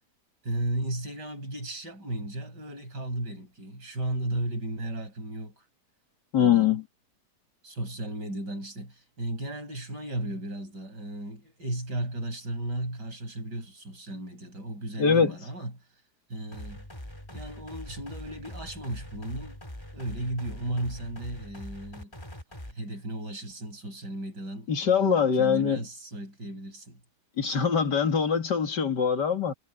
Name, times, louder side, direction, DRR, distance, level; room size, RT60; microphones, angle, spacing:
voice 1, 0.4-5.6 6.4-6.7 7.6-15.7 16.3-16.9 17.3-19.6 19.9-22.1 22.7-27.0, right 1 dB, 85° right, 7.6 m, -35 dB
voice 2, 6.3-6.8 15.0-15.4 24.7-25.8 27.4-29.5, left 7 dB, 85° left, 2.7 m, -23 dB
sound 1, 16.5-22.7, left 1 dB, 15° left, 3.2 m, -42 dB
omnidirectional pair, 1.8 m